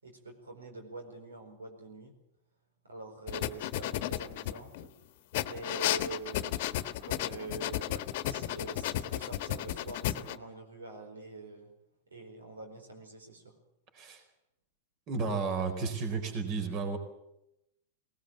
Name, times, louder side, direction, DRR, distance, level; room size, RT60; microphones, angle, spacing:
voice 1, 0.0-2.1 2.8-4.9 5.4-6.8 7.0-11.7 12.1-13.5, right 3 dB, 85° right, 3 dB, 4.7 m, -45 dB
sound 1, 3.3-4.9 5.3-10.4, left 14 dB, 55° left, 1.2 m, -33 dB
voice 2, 15.1-17.0, right 4 dB, 40° right, 7 dB, 4.5 m, -32 dB
20.5 x 19.5 x 7.6 m, 0.84 s
hypercardioid pair, 100°, 0 cm